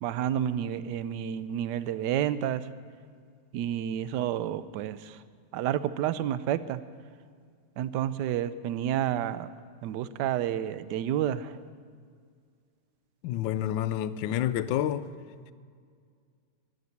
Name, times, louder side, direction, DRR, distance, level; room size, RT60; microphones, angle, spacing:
voice 1, 0.0-2.7 3.5-5.2 5.5-6.8 7.8-9.5 9.8-11.6, right 10 dB, 70° right, 1.0 m, -30 dB
voice 2, 13.2-15.1, left 11 dB, 75° left, 1.3 m, -28 dB
11.5 x 11.0 x 9.6 m
omnidirectional pair, 2.3 m